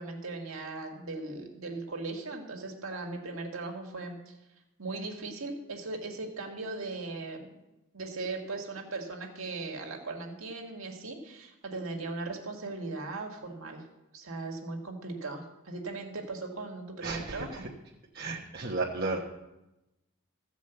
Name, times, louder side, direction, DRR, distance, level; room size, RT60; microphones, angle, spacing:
voice 1, 0.0-4.3 4.8-7.6 7.9-13.8 14.1-17.6, right 3 dB, 70° right, 2 dB, 1.8 m, -38 dB
voice 2, 17.0-17.7 18.1-19.2, right 3 dB, 45° right, -3 dB, 1.2 m, -33 dB
14.5 x 5.1 x 8.0 m, 0.96 s
head